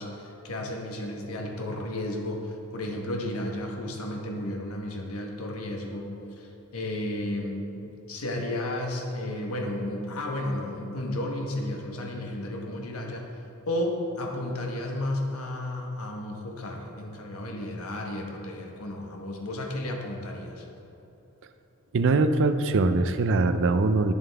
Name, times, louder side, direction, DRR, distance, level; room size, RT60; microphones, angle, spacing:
voice 1, 0.0-13.3 13.7-20.7, left 1 dB, 75° left, 1 dB, 1.2 m, -33 dB
voice 2, 21.9-24.1, right 3 dB, 60° right, 10 dB, 0.5 m, -22 dB
10.5 x 7.0 x 3.4 m, 3.0 s
head